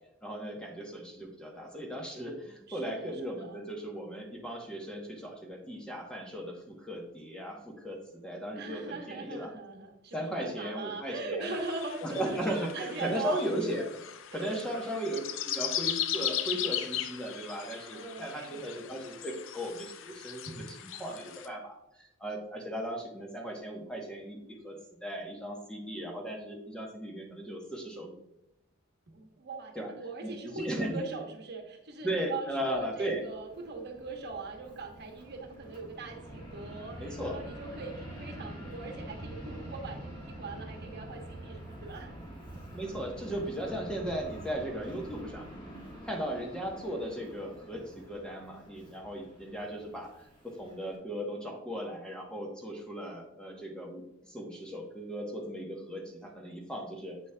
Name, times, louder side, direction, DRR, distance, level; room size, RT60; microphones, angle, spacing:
voice 1, 0.2-9.5 10.1-11.6 12.0-13.8 14.3-28.1 29.7-29.9 30.2-31.0 32.0-33.2 37.0-37.4 42.7-45.5 46.0-57.2, equal, 5° left, 0 dB, 1.0 m, -37 dB
voice 2, 2.7-3.6 8.5-13.5 14.3-14.8 17.9-18.8 20.5-20.6 29.1-42.1, right 3 dB, 55° right, 2 dB, 1.1 m, -41 dB
sound 1, 11.4-21.5, left 10 dB, 70° left, 0.4 m, -37 dB
Fixed-wing aircraft airplane, 33.1-51.0, right 1 dB, 25° left, 1.9 m, -46 dB
7.9 x 6.2 x 2.2 m, 0.84 s
head